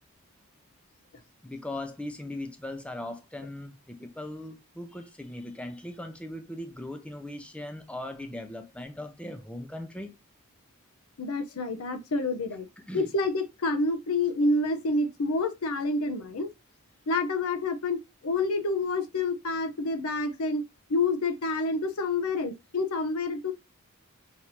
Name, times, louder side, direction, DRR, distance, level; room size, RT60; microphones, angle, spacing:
voice 1, 1.4-10.1 12.9-13.1, left 1 dB, 5° left, 0.5 m, -39 dB
voice 2, 11.2-12.7 12.9-16.5 17.1-18.0 18.2-20.6 20.9-23.5, left 2 dB, 85° left, 0.7 m, -28 dB
5.7 x 2.7 x 3.0 m
head